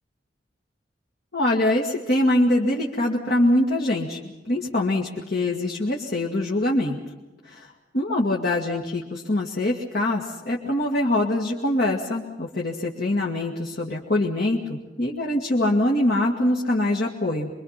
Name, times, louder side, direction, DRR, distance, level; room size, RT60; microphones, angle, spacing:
voice 1, 1.3-4.2 4.4-7.0 7.4-7.7 7.9-17.5, left 1 dB, 60° left, -2 dB, 2.0 m, -23 dB
26.5 x 23.0 x 5.8 m, 1.1 s
head